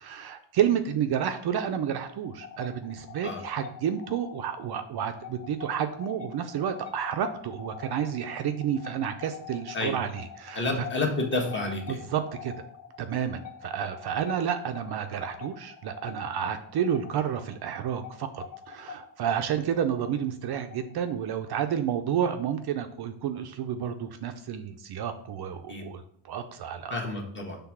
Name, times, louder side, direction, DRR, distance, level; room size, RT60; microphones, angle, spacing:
voice 1, 0.0-10.6 11.9-12.5 13.0-27.0, right 9 dB, 55° right, 7 dB, 0.5 m, -30 dB
sound 1, 2.1-21.5, left 7 dB, 65° left, 1.5 m, -45 dB
voice 2, 10.5-12.0 25.7-25.8 26.9-27.6, left 2 dB, 25° left, 0 dB, 1.3 m, -29 dB
5.8 x 3.5 x 5.9 m, 0.70 s
cardioid pair, 150°, 48 cm